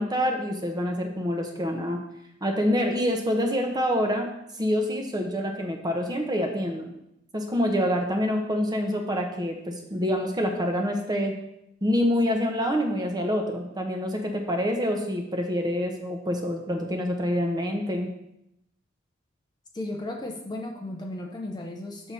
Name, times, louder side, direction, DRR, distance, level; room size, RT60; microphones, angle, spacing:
voice 1, 0.0-2.0 2.4-4.3 4.6-6.9 7.3-11.3 11.8-18.1, equal, 20° right, 3 dB, 1.0 m, -26 dB
voice 2, 19.7-22.1, left 1 dB, 20° left, 1 dB, 0.7 m, -35 dB
6.7 x 5.5 x 4.3 m, 0.80 s
head